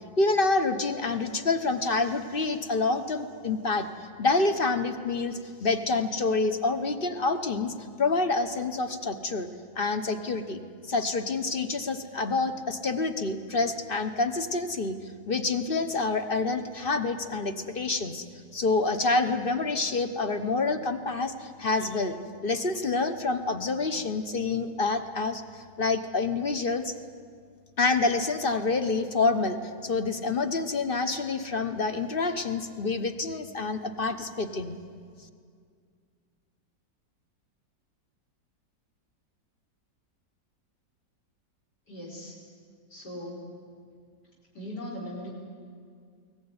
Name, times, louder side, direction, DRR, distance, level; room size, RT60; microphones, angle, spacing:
voice 1, 0.2-3.9 4.2-9.5 9.8-10.6 10.9-15.0 15.3-18.2 18.5-22.1 22.4-26.9 27.8-29.6 29.8-34.8, left 3 dB, 35° left, 8 dB, 1.0 m, -27 dB
voice 2, 41.9-42.4 42.9-43.5 44.5-45.3, equal, 60° left, -3 dB, 4.9 m, -39 dB
22.0 x 18.0 x 9.7 m, 2.1 s
omnidirectional pair, 2.0 m